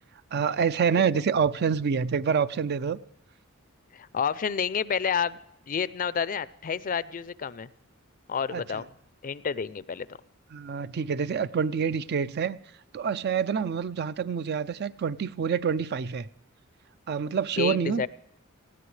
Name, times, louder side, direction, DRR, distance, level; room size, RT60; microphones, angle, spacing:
voice 1, 0.3-3.0 8.5-8.6 10.5-12.6 12.9-16.3 17.1-18.0, right 6 dB, 50° right, 0.4 m, -27 dB
voice 2, 3.9-5.4 5.7-7.7 8.3-8.9 9.2-10.1 17.6-18.1, left 6 dB, 40° left, 0.5 m, -29 dB
19.0 x 15.5 x 3.2 m
head